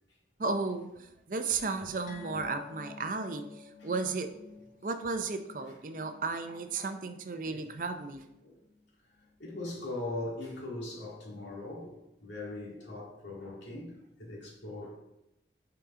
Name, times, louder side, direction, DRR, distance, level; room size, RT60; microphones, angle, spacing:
voice 1, 0.4-4.3 4.8-8.2, right 4 dB, 45° right, 0.5 m, -34 dB
sound 1, 2.1-8.9 9.2-9.4 9.7-9.8, left 5 dB, 40° left, 0.8 m, -52 dB
voice 2, 9.4-15.0, left 2 dB, 85° left, 2.1 m, -40 dB
5.9 x 4.9 x 3.7 m
head